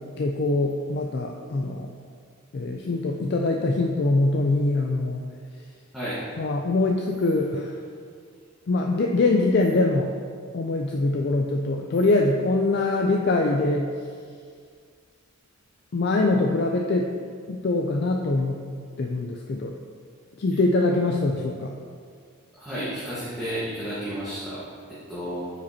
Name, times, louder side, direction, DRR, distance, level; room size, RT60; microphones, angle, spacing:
voice 1, 0.2-1.9 2.5-5.2 5.5-5.6 6.4-7.8 8.7-10.1 10.5-14.2 15.9-17.1 17.5-18.6 19.0-19.7 20.4-21.7, left 2 dB, 50° left, 1 dB, 0.4 m, -23 dB
voice 2, 5.9-6.2 22.5-25.5, equal, ahead, -13 dB, 1.3 m, -32 dB
8.5 x 5.1 x 2.8 m, 2.1 s
head